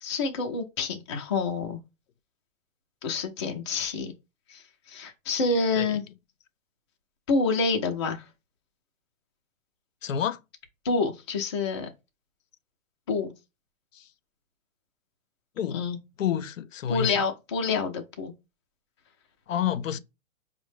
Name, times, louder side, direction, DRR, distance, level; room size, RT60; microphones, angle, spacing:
voice 1, 0.0-1.8 3.0-4.1 4.5-6.0 7.3-8.2 10.8-11.9 13.1-13.3 15.7-16.0 16.9-18.3, left 4 dB, 25° left, 0.3 m, -28 dB
voice 2, 10.0-10.4 13.9-14.1 15.6-15.9 16.2-17.1 19.5-20.0, left 9 dB, 70° left, 0.5 m, -29 dB
4.8 x 2.1 x 3.1 m
hypercardioid pair, 130°, 40 cm